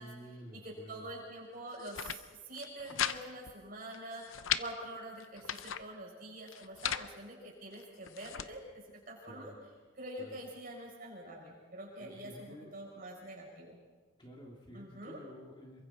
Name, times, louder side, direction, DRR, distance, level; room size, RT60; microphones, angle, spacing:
voice 1, 0.0-1.1 9.2-9.6 10.2-10.4 12.0-12.8 14.2-15.8, equal, 20° left, -1 dB, 2.6 m, -51 dB
voice 2, 0.5-8.6 8.9-9.5 10.0-13.8 14.7-15.2, right 1 dB, 45° right, -2 dB, 6.5 m, -46 dB
sound 1, 1.7-2.2 2.5-3.2 3.5-3.6 3.9-4.7 5.2-5.8 6.5-7.1 7.7-8.5, left 9 dB, 70° left, 0.7 m, -37 dB
27.5 x 23.5 x 4.3 m, 1.3 s
head